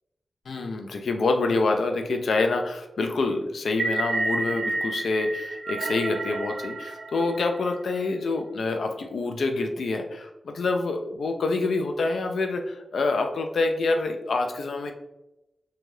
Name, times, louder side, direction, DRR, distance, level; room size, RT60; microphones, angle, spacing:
voice 1, 0.5-14.9, left 3 dB, 85° left, 4 dB, 0.3 m, -26 dB
sound 1, 3.7-8.0, right 2 dB, 60° right, 0.3 m, -30 dB
3.2 x 2.3 x 2.6 m, 0.94 s
wide cardioid pair, 105°, 0 cm